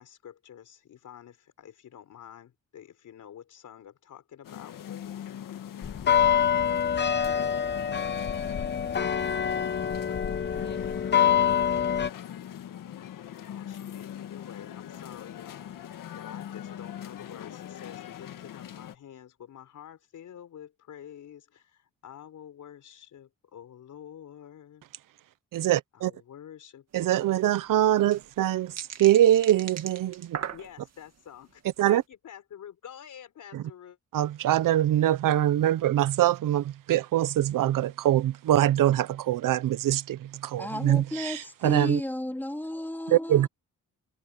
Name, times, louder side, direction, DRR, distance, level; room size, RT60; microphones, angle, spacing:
voice 1, 0.0-5.2 13.5-24.8 25.9-27.2 30.5-31.6 31.9-34.0, left 9 dB, 70° left, 4.2 m, -48 dB
sound 1, 4.4-18.9, left 10 dB, 85° left, 1.8 m, -41 dB
sound 2, 5.8-12.1, left 8 dB, 35° left, 0.8 m, -25 dB
voice 2, 25.5-26.1 26.9-30.4 31.8-32.0 33.5-33.6 34.1-42.0 43.1-43.5, right 12 dB, 80° right, 0.8 m, -24 dB
sound 3, 27.0-27.1 27.3-27.4 27.8-31.1 31.6-31.9, right 8 dB, 55° right, 2.1 m, -39 dB
voice 3, 40.6-43.5, left 1 dB, 5° left, 2.5 m, -33 dB
wide cardioid pair, 140°, 32 cm